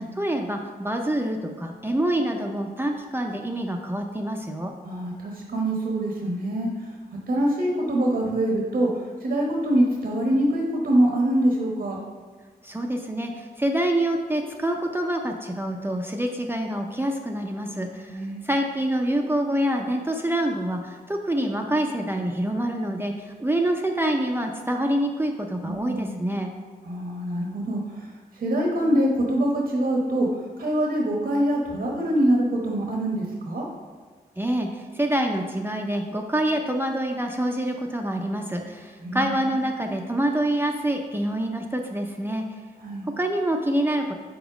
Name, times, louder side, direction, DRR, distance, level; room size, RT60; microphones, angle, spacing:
voice 1, 0.0-4.7 12.6-18.1 18.4-26.5 34.4-34.7 34.9-42.4 43.2-44.1, right 1 dB, 15° right, 2 dB, 0.5 m, -26 dB
voice 2, 4.8-6.7 7.3-8.9 9.2-12.0 18.1-18.4 25.6-26.2 26.8-28.1 28.3-30.3 30.6-33.7 39.0-39.6 42.8-43.1, right 1 dB, 80° right, -1 dB, 1.1 m, -24 dB
5.0 x 4.5 x 5.0 m, 1.5 s
wide cardioid pair, 110°, 16 cm